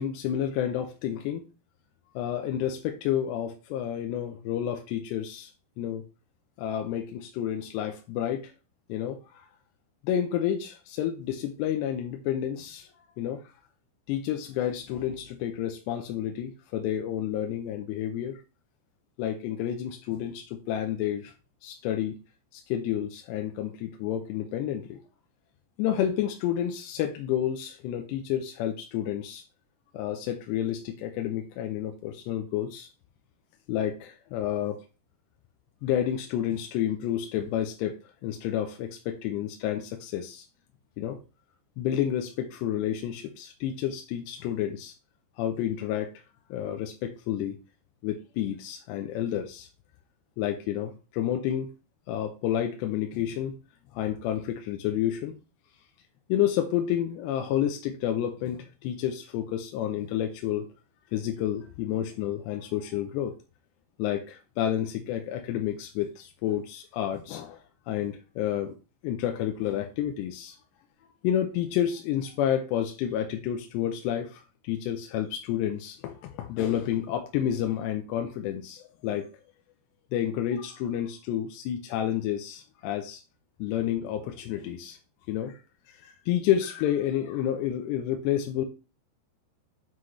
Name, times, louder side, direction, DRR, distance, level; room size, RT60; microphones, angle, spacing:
voice 1, 0.0-1.4 2.2-5.5 5.8-6.0 6.6-8.5 8.9-9.5 10.0-12.9 13.2-13.4 14.1-18.4 19.2-21.3 21.6-22.2 22.5-25.0 25.8-29.4 29.9-32.9 33.7-34.8 35.8-40.5 41.0-41.2 41.8-44.9 45.4-46.1 46.5-47.6 48.0-49.7 50.4-51.7 52.1-53.6 53.9-55.3 56.3-60.7 61.1-63.3 64.0-67.6 67.9-68.7 69.0-70.6 71.2-79.3 80.1-83.2 83.6-85.0 85.3-85.6 85.9-88.7, left 10 dB, 80° left, 5 dB, 2.8 m, -30 dB
7.6 x 5.7 x 3.2 m, 0.31 s
omnidirectional pair, 5.0 m